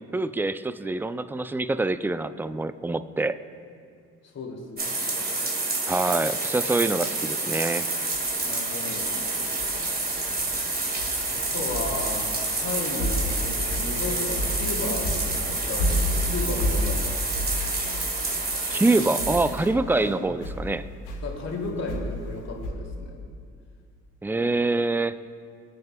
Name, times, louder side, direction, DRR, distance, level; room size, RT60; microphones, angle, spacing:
voice 1, 0.1-3.4 5.9-7.9 18.7-20.9 24.2-25.2, right 2 dB, 5° right, 13 dB, 0.4 m, -25 dB
voice 2, 4.2-5.2 8.4-9.5 11.3-12.3 12.6-17.3 20.0-20.3 21.2-23.2, left 3 dB, 50° left, 0 dB, 2.6 m, -34 dB
sound 1, 4.8-19.7, right 2 dB, 30° right, 1.9 m, -28 dB
sound 2, 8.1-8.3 9.0-10.6 11.0-14.8 15.0-20.7 21.0-22.7, equal, 90° left, 1.8 m, -31 dB
23.0 x 8.9 x 2.2 m, 2.3 s
supercardioid pair, 60°, 33 cm